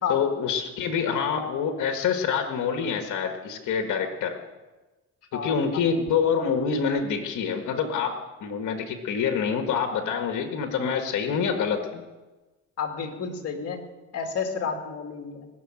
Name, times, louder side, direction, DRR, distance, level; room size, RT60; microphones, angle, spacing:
voice 1, 0.1-4.4 5.3-12.0, left 6 dB, 75° left, 4 dB, 1.7 m, -26 dB
voice 2, 12.8-13.8 14.1-15.5, left 6 dB, 55° left, 3 dB, 2.6 m, -30 dB
20.5 x 6.8 x 8.9 m, 1.2 s
cardioid pair, 90°, 30 cm